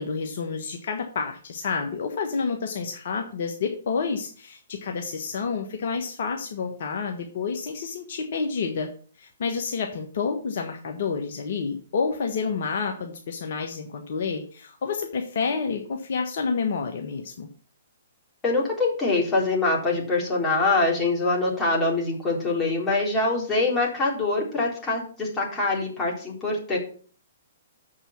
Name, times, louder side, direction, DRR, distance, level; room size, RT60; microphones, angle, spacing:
voice 1, 0.0-8.9 9.2-17.5, left 5 dB, 60° left, 3 dB, 1.3 m, -29 dB
voice 2, 18.4-26.8, left 3 dB, 20° left, -3 dB, 3.8 m, -24 dB
7.0 x 5.5 x 7.3 m, 0.43 s
figure-of-eight pair, 120°, 0 cm